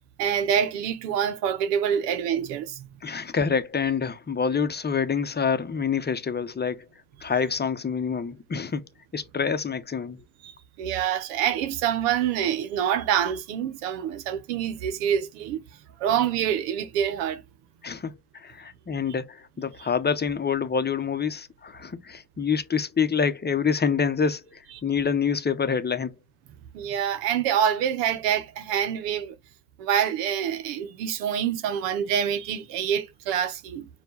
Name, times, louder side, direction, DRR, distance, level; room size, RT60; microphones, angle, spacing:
voice 1, 0.2-2.9 10.4-15.6 16.0-17.4 26.7-29.4 29.8-33.9, right 9 dB, 85° right, 0.9 m, -26 dB
voice 2, 3.0-6.9 7.2-8.8 9.1-10.2 17.8-26.1, left 6 dB, 20° left, 0.8 m, -27 dB
4.5 x 2.3 x 3.8 m
supercardioid pair, 70°, 46 cm